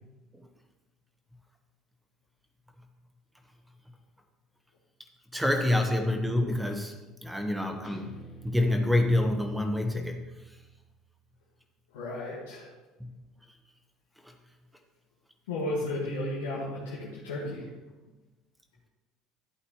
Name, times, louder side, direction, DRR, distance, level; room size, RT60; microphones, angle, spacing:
voice 1, 5.3-10.2 13.0-13.1, left 1 dB, 5° right, 4 dB, 1.3 m, -27 dB
Guitar, 7.8-11.0, right 2 dB, 50° left, 2.9 m, -50 dB
voice 2, 11.9-12.7 15.5-17.7, left 1 dB, 85° left, -7 dB, 1.9 m, -34 dB
11.5 x 8.3 x 3.2 m, 1.2 s
hypercardioid pair, 75°, 0 cm